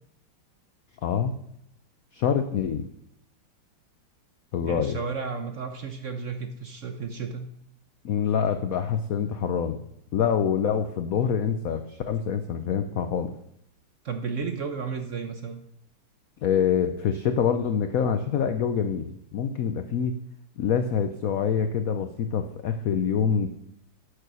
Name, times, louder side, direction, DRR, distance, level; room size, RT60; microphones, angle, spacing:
voice 1, 1.0-1.3 2.1-2.9 4.5-5.0 8.0-9.8 10.1-13.3 16.4-20.2 20.6-23.5, left 7 dB, 80° left, 9 dB, 0.7 m, -25 dB
voice 2, 4.6-7.5 14.0-15.6, right 5 dB, 60° right, 6 dB, 0.8 m, -33 dB
11.5 x 6.8 x 6.1 m, 0.75 s
omnidirectional pair, 2.3 m